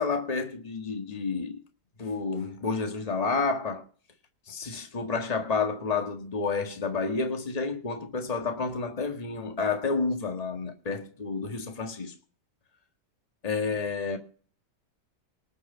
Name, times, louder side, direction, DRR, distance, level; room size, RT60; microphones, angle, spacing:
voice 1, 0.0-1.6 2.0-3.8 4.5-12.1 13.4-14.2, left 4 dB, 25° left, 1.7 m, -30 dB
19.5 x 6.7 x 5.7 m
omnidirectional pair, 1.8 m